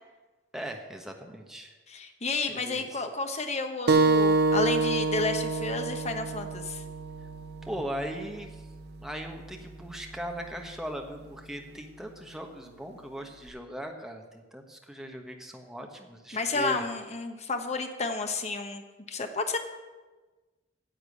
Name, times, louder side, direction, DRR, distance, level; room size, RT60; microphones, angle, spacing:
voice 1, 0.5-1.7 2.5-2.9 7.6-8.5 9.0-16.8, equal, 5° right, 2 dB, 1.3 m, -39 dB
voice 2, 1.9-6.8 16.3-19.6, left 3 dB, 35° left, 6 dB, 1.1 m, -31 dB
sound 1, 3.9-9.0, right 3 dB, 60° right, 0.8 m, -27 dB
10.0 x 7.4 x 8.3 m, 1.2 s
head